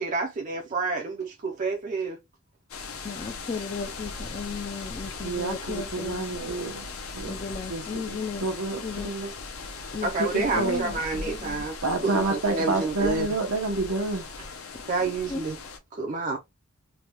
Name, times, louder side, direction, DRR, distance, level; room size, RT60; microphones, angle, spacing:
voice 1, 0.0-2.2 10.0-11.8 12.0-13.3 14.9-15.6 15.9-16.4, right 3 dB, 35° right, 0.4 m, -29 dB
sound 1, 2.7-15.8, left 4 dB, 65° left, 0.7 m, -39 dB
voice 2, 3.0-6.3 7.3-8.5 8.8-9.1 9.9-11.7 12.0-12.3 15.0-15.4, left 4 dB, 25° left, 0.4 m, -35 dB
voice 3, 5.2-7.4 7.7-7.8 8.1-9.3 10.2-10.8 11.8-14.3, right 3 dB, 90° right, 0.8 m, -29 dB
3.3 x 2.2 x 2.9 m
head